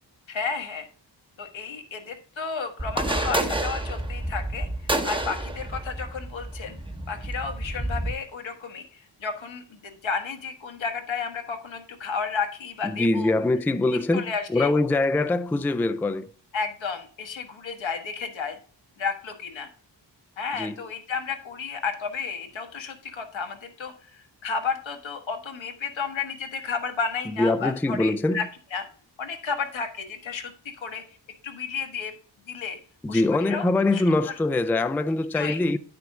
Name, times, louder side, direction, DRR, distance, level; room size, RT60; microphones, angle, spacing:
voice 1, 0.3-0.9 1.4-6.8 7.1-13.3 14.1-14.7 16.5-18.6 19.0-19.7 20.4-28.4 28.7-28.9 29.2-31.0 31.4-32.1 32.5-32.8 33.1-33.7 33.9-34.0 35.3-35.6, left 5 dB, 80° left, 1.3 m, -32 dB
sound 1, 2.8-8.1, right 1 dB, 10° right, 0.8 m, -29 dB
voice 2, 12.8-16.3 20.6-20.8 27.3-28.5 33.0-35.8, left 2 dB, 5° left, 0.3 m, -23 dB
9.0 x 6.0 x 3.6 m
wide cardioid pair, 80°, 45 cm